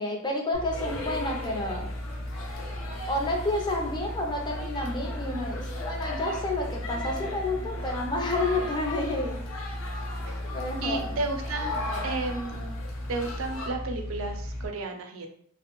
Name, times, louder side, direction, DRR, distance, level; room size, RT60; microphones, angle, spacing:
voice 1, 0.0-1.9 3.1-9.4 10.5-11.2, left 2 dB, 20° left, 1 dB, 0.4 m, -30 dB
sound 1, 0.5-14.7, left 1 dB, 55° left, 0.8 m, -36 dB
sound 2, 0.7-13.7, left 2 dB, 75° left, 0.5 m, -39 dB
voice 2, 10.8-11.7 12.0-12.8 13.1-15.3, right 3 dB, 75° right, 4 dB, 0.4 m, -32 dB
2.4 x 2.0 x 2.9 m, 0.65 s
head